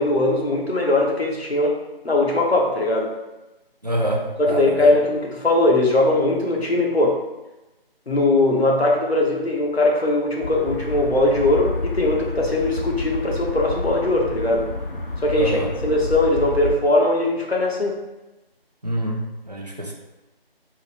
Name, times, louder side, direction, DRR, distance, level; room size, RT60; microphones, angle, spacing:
voice 1, 0.0-1.8 2.0-3.1 4.4-7.2 8.1-14.7 15.2-18.0, left 2 dB, 90° left, -1 dB, 1.0 m, -20 dB
voice 2, 3.8-4.9 15.4-15.7 18.8-19.9, right 1 dB, 45° right, 1 dB, 0.5 m, -26 dB
sound 1, 10.4-16.7, left 2 dB, 60° left, 0.6 m, -29 dB
3.9 x 2.0 x 4.3 m, 1.0 s
figure-of-eight pair, 165°, 30 cm